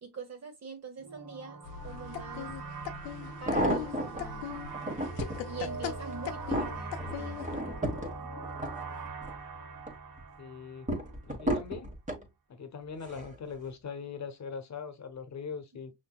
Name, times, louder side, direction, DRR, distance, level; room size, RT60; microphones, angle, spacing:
voice 1, 0.0-2.5 3.4-4.6 5.4-7.9, right 5 dB, 35° right, 1.6 m, -44 dB
sound 1, 1.0-11.3, right 3 dB, 60° right, 2.1 m, -42 dB
sound 2, 1.7-7.6, left 9 dB, 80° left, 0.7 m, -41 dB
sound 3, 2.5-2.6 3.2-4.2 4.7-5.4 5.9-9.4 9.8-10.2 10.9-12.2 13.0-13.4 13.7-13.8, equal, 15° right, 1.6 m, -33 dB
voice 2, 10.4-10.9 11.2-11.9 12.5-15.9, left 5 dB, 40° left, 1.1 m, -41 dB
5.6 x 3.1 x 2.3 m
supercardioid pair, 75°, 43 cm